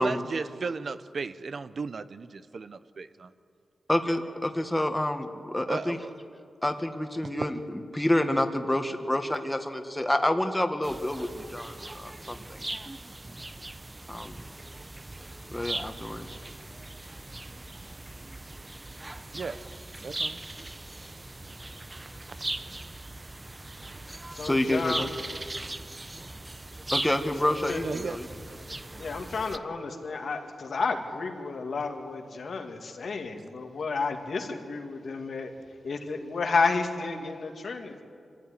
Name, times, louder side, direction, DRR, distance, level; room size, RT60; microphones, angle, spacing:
voice 1, 0.0-3.3 5.7-6.1 7.2-7.5 19.3-19.6 20.0-20.4 27.8-28.2, right 4 dB, 60° right, 12 dB, 0.8 m, -35 dB
voice 2, 3.9-6.0 6.6-12.6 14.1-14.4 15.5-16.3 24.4-25.1 26.9-28.3, left 1 dB, 10° left, 6 dB, 1.7 m, -28 dB
sound 1, 10.8-29.6, right 2 dB, 20° right, 0.7 m, -39 dB
voice 3, 24.1-25.0 27.7-27.8 29.0-35.5 35.8-38.0, left 4 dB, 70° left, 3 dB, 2.3 m, -31 dB
25.0 x 15.5 x 9.9 m, 2.4 s
wide cardioid pair, 95°, 0 cm